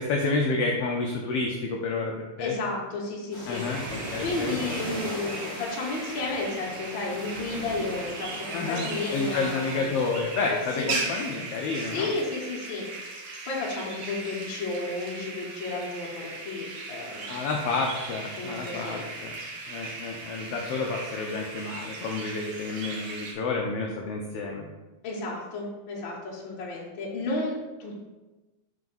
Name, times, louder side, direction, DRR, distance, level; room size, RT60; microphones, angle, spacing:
voice 1, 0.0-2.6 3.5-4.6 8.5-12.1 17.3-19.4 19.7-24.7, left 3 dB, 80° left, 1 dB, 1.4 m, -30 dB
voice 2, 2.4-3.7 4.0-9.9 10.8-10.9 11.9-12.9 13.4-17.5 18.4-19.1 25.0-28.0, left 3 dB, 55° left, -4 dB, 1.7 m, -32 dB
sound 1, 3.3-10.2, equal, ahead, 1.1 m, -39 dB
sound 2, 3.5-23.3, right 3 dB, 70° right, 1.2 m, -38 dB
5.6 x 4.7 x 4.0 m, 1.1 s
omnidirectional pair, 3.3 m